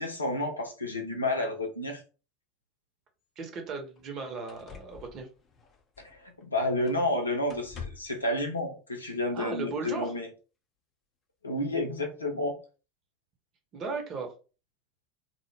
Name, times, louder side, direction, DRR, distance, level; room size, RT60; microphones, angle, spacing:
voice 1, 0.0-2.0 6.0-10.3 11.4-12.6, left 1 dB, 85° left, 0.6 m, -30 dB
sound 1, 3.2-3.3 3.9-4.1 4.5-6.4 6.8-7.2 7.5-8.2 9.4-9.5, left 6 dB, 30° left, 0.5 m, -47 dB
voice 2, 3.4-5.3 9.3-10.1 13.7-14.3, right 4 dB, 40° right, 0.8 m, -36 dB
2.1 x 2.0 x 3.3 m
figure-of-eight pair, 80°, 0 cm